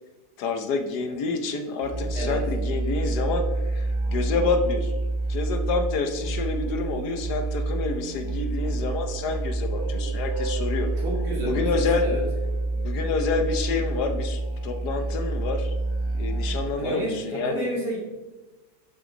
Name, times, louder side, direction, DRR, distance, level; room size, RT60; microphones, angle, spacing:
voice 1, 0.4-4.9 5.3-10.9 11.4-12.1 12.7-15.7 16.2-17.7, left 4 dB, 75° left, 7 dB, 1.4 m, -28 dB
Musical instrument, 1.8-16.8, right 2 dB, 20° right, 0.9 m, -28 dB
voice 2, 11.0-12.2 16.8-18.0, right 1 dB, 80° right, -4 dB, 3.8 m, -31 dB
11.5 x 6.5 x 4.0 m, 1.2 s
omnidirectional pair, 1.8 m